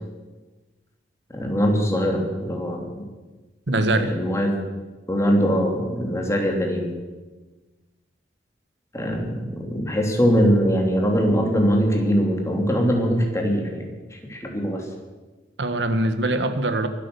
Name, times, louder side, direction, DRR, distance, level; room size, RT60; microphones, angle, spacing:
voice 1, 1.3-3.0 3.9-4.5 5.1-6.9 8.9-14.8, equal, 15° left, 1 dB, 2.8 m, -22 dB
voice 2, 3.7-4.1 15.6-16.9, right 2 dB, 80° right, 10 dB, 1.4 m, -22 dB
23.0 x 8.6 x 7.0 m, 1.2 s
head